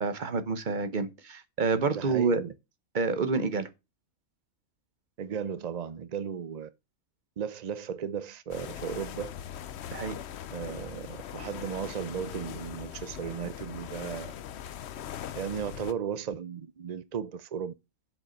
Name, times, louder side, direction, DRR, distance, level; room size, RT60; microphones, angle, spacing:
voice 1, 0.0-2.4 2.9-3.7 9.9-10.2, right 4 dB, 40° right, 1.0 m, -28 dB
voice 2, 1.9-2.5 5.2-6.7 7.4-9.3 10.5-14.3 15.3-17.7, right 7 dB, 75° right, 0.3 m, -35 dB
sound 1, 8.5-15.9, left 10 dB, 60° left, 0.8 m, -40 dB
7.2 x 5.4 x 5.3 m
omnidirectional pair, 1.5 m